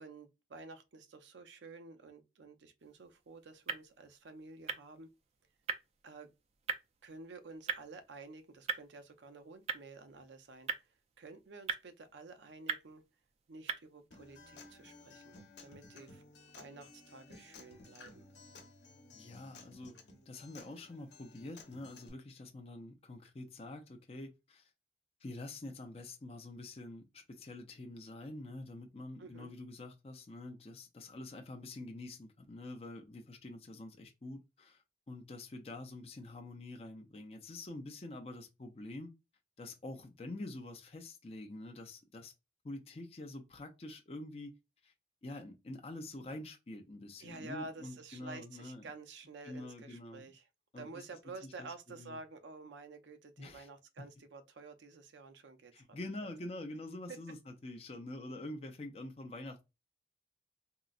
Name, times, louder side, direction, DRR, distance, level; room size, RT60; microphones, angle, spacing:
voice 1, 0.0-5.1 6.0-6.3 7.0-13.0 13.5-16.3 16.6-18.3 29.2-29.6 47.2-50.5 50.8-55.9 56.2-56.3 57.1-57.2, right 3 dB, 90° right, 0.5 m, -51 dB
sound 1, 2.8-14.1, right 6 dB, 35° right, 0.3 m, -44 dB
Acoustic guitar, 14.1-22.1, left 3 dB, 80° left, 0.9 m, -56 dB
voice 2, 19.1-20.0 20.3-24.7 25.2-39.1 39.6-42.3 42.6-44.5 44.8-44.9 45.2-48.9 49.4-50.3 50.7-51.0 51.4-52.2 53.4-53.7 54.0-54.1 55.7-59.6, left 2 dB, 35° left, 0.5 m, -46 dB
3.7 x 2.0 x 2.4 m
head